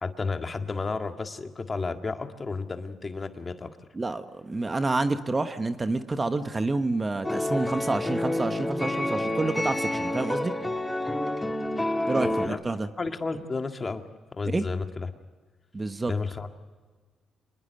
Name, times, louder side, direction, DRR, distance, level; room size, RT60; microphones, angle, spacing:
voice 1, 0.0-3.8 12.2-12.6 13.0-14.0 14.3-15.1 16.1-16.5, left 4 dB, 30° left, 6 dB, 1.8 m, -32 dB
voice 2, 3.9-10.5 12.1-12.9 14.5-14.6 15.7-16.1, right 3 dB, 25° right, 9 dB, 1.2 m, -28 dB
sound 1, 7.2-12.5, left 1 dB, 10° left, 1.7 m, -28 dB
25.0 x 21.0 x 6.6 m, 1.4 s
cardioid pair, 90°, 0 cm